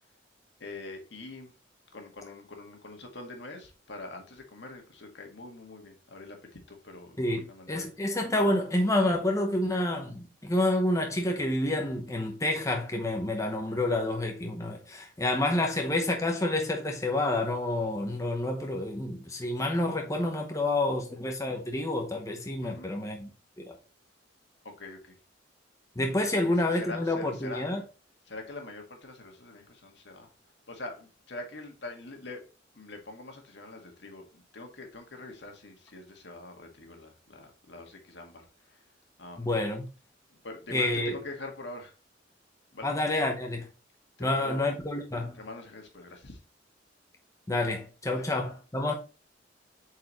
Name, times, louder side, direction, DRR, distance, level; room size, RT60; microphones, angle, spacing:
voice 1, 0.6-1.5 1.9-7.9 22.6-22.9 24.6-25.2 26.3-27.8 28.3-30.3 30.7-32.4 32.7-38.9 39.2-39.6 40.3-41.9 42.7-42.9 44.2-44.6 45.3-46.4 48.1-48.3, left 2 dB, 65° left, 1.9 m, -44 dB
voice 2, 7.2-23.3 23.6-23.8 26.0-27.8 39.4-39.8 40.7-41.2 42.8-43.7 44.2-45.4 47.5-48.9, left 1 dB, 15° left, 0.9 m, -28 dB
7.8 x 4.7 x 3.1 m
head